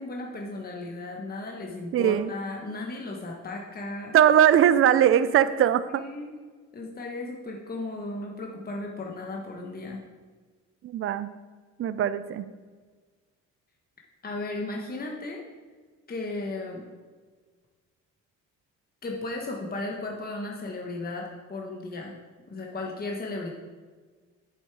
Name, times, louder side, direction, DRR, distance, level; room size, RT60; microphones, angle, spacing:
voice 1, 0.0-4.1 5.9-6.3 6.7-10.0 14.2-15.4 16.1-16.8 19.0-22.2 22.5-23.5, left 2 dB, 30° left, 0 dB, 1.3 m, -35 dB
voice 2, 1.9-2.3 4.1-6.0 10.8-11.3 11.8-12.4, right 10 dB, 45° right, 14 dB, 0.5 m, -20 dB
8.0 x 7.2 x 4.7 m, 1.5 s
cardioid pair, 90°, 30 cm